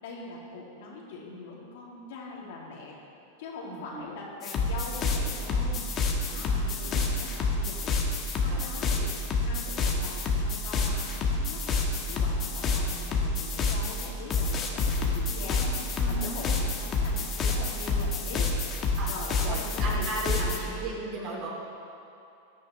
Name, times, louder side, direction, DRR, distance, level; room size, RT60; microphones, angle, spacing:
voice 1, 0.0-3.0 3.4-15.6 16.1-18.5 19.1-20.5, left 3 dB, 70° left, -3 dB, 2.6 m, -42 dB
voice 2, 3.6-4.2 6.3-7.3 8.5-8.6 13.1-13.3 15.5-15.6 15.9-16.5 19.0-19.1 19.4-21.5, right 2 dB, 45° right, -2 dB, 2.8 m, -37 dB
sound 1, 4.4-20.6, left 3 dB, 30° left, 1.4 m, -28 dB
14.5 x 10.5 x 3.3 m, 2.6 s
supercardioid pair, 130°, 0 cm